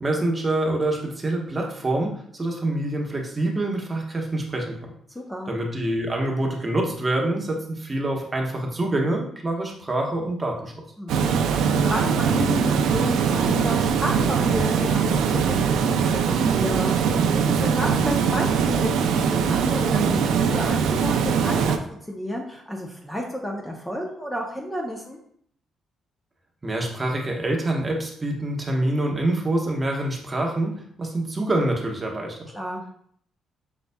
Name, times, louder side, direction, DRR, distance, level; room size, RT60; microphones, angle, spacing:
voice 1, 0.0-4.9 5.5-10.7 26.6-32.4, right 1 dB, 25° right, 0 dB, 1.1 m, -26 dB
voice 2, 5.1-5.5 11.0-21.7 22.1-25.2 32.5-32.8, left 1 dB, 10° left, 0 dB, 0.7 m, -31 dB
Water, 11.1-21.8, right 6 dB, 85° right, 0.4 m, -22 dB
5.8 x 4.0 x 2.3 m, 0.64 s
cardioid pair, 90°, 0 cm